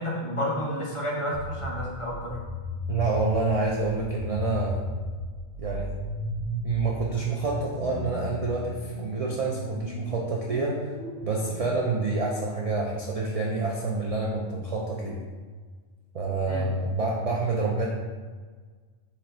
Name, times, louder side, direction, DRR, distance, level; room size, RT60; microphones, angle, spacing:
voice 1, 0.0-2.4 16.5-16.7, equal, 30° left, -4 dB, 0.7 m, -30 dB
sound 1, 1.3-11.7, left 1 dB, 55° left, 1.6 m, -36 dB
voice 2, 2.9-4.8 5.6-5.9 6.6-10.8 11.2-15.2 16.1-17.9, right 3 dB, 60° right, -3 dB, 0.3 m, -28 dB
4.6 x 2.9 x 3.8 m, 1.5 s
omnidirectional pair, 1.3 m